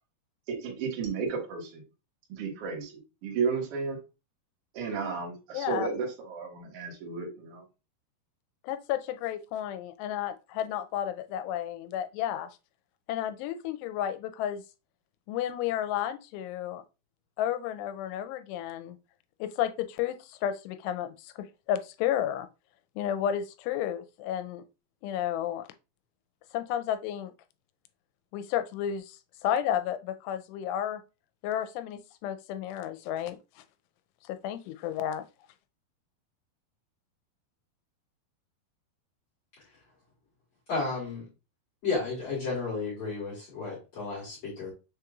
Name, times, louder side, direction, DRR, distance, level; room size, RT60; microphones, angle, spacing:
voice 1, 0.5-1.8 2.3-4.0 4.7-7.6, right 5 dB, 80° right, 1.3 m, -33 dB
voice 2, 5.5-5.9 8.6-12.5 13.1-14.6 15.3-16.8 17.4-19.0 19.4-22.5 23.0-24.6 25.0-25.7 26.5-27.3 28.3-31.0 31.4-33.4 34.3-35.2, left 10 dB, 85° left, 2.7 m, -32 dB
voice 3, 40.7-41.3 41.8-44.7, left 4 dB, 55° left, 2.0 m, -32 dB
6.3 x 3.0 x 2.3 m
omnidirectional pair, 4.8 m